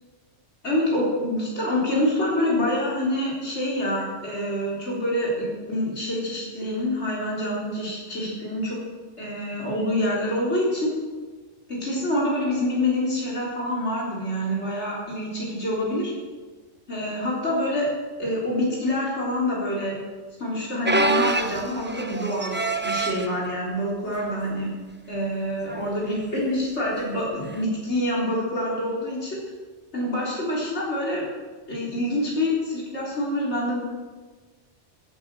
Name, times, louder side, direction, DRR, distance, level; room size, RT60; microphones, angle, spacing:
voice 1, 0.6-8.8 9.2-10.9 11.7-16.1 16.9-17.9 18.2-20.0 20.4-24.7 25.1-29.4 29.9-31.3 31.7-33.8, left 1 dB, 65° left, -5 dB, 4.1 m, -26 dB
sound 1, 20.8-23.3 24.1-24.3 24.7-24.8 25.7-25.9 27.5-27.6, right 2 dB, 10° right, 0.8 m, -25 dB
16.0 x 11.0 x 7.6 m, 1.4 s
omnidirectional pair, 1.3 m